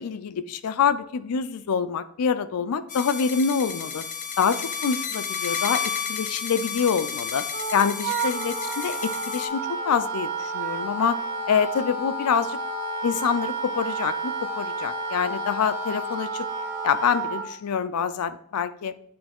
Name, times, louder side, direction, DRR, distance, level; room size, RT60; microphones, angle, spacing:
voice 1, 0.0-4.0 4.4-7.4 7.7-11.2 11.5-12.6 13.0-16.5 16.8-18.9, left 6 dB, 85° left, 13 dB, 0.4 m, -26 dB
sound 1, 2.9-9.5, left 6 dB, 35° left, 0.5 m, -31 dB
Wind instrument woodwind instrument, 7.5-17.5, right 3 dB, 35° right, 1.4 m, -31 dB
8.5 x 3.2 x 3.5 m, 0.69 s
head